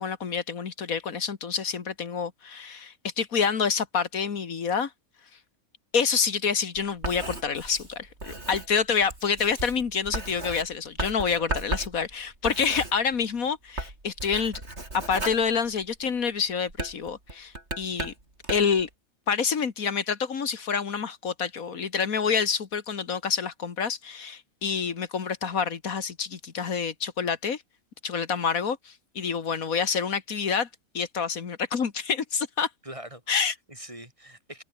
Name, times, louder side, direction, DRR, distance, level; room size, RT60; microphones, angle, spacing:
voice 1, 0.0-4.9 5.9-14.6 14.9-18.1 18.5-18.9 19.3-27.6 28.0-30.7 30.9-32.7 33.3-33.5, left 6 dB, 80° left, 2.1 m, -27 dB
Writing, 6.8-13.4 13.7-16.2 16.7-18.8, right 2 dB, 50° right, 5.6 m, -36 dB
voice 2, 32.8-34.6, right 1 dB, 20° right, 5.3 m, -44 dB
omnidirectional pair, 1.5 m